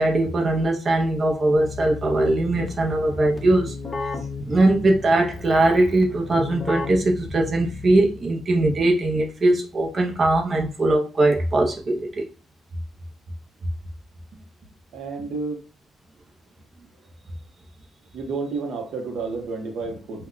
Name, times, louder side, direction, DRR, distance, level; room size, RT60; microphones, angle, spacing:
voice 1, 0.0-3.7 4.5-12.3, right 2 dB, 40° right, 0.6 m, -20 dB
Keyboard (musical), 1.5-8.4, left 3 dB, 40° left, 0.6 m, -34 dB
voice 2, 14.9-15.6 18.1-20.3, right 4 dB, 75° right, 0.7 m, -30 dB
2.2 x 2.2 x 3.7 m
cardioid pair, 90°, 0 cm